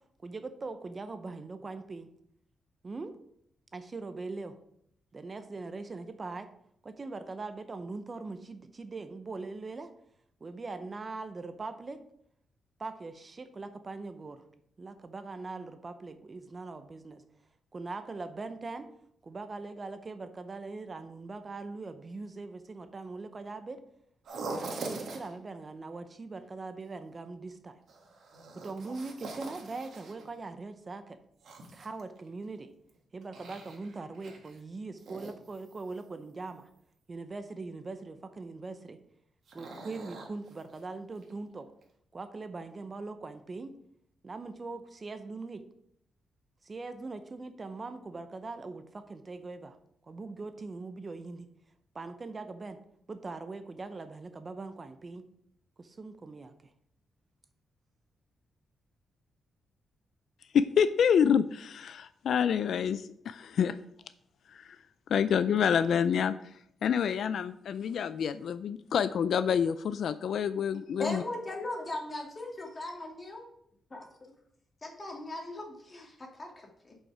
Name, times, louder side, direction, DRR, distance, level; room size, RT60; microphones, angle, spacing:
voice 1, 0.2-2.1 2.8-3.2 3.7-4.6 5.1-6.5 6.8-9.9 10.4-12.0 12.8-14.4 14.8-17.2 17.7-18.9 19.2-23.8 24.6-27.8 28.6-31.2 31.7-32.7 33.1-36.7 37.1-39.0 39.5-41.7 42.1-43.7 44.2-45.6 46.6-49.8 50.1-51.5 51.9-52.8 53.1-55.2 55.8-56.5, right 3 dB, 35° right, 9 dB, 0.7 m, -41 dB
sound 1, 24.2-25.3 27.9-30.3 31.4-32.4 32.9-34.6 34.9-36.0 39.5-40.8 41.2-41.3 41.8-41.9, right 3 dB, 70° right, 1.7 m, -43 dB
voice 2, 60.5-63.8 64.5-64.8 65.1-71.2, left 7 dB, 70° left, 13 dB, 0.3 m, -27 dB
voice 3, 71.0-73.4 73.9-74.0 74.8-77.0, left 2 dB, 30° left, 0 dB, 2.2 m, -38 dB
7.1 x 5.6 x 4.9 m, 0.72 s
cardioid pair, 90°, 0 cm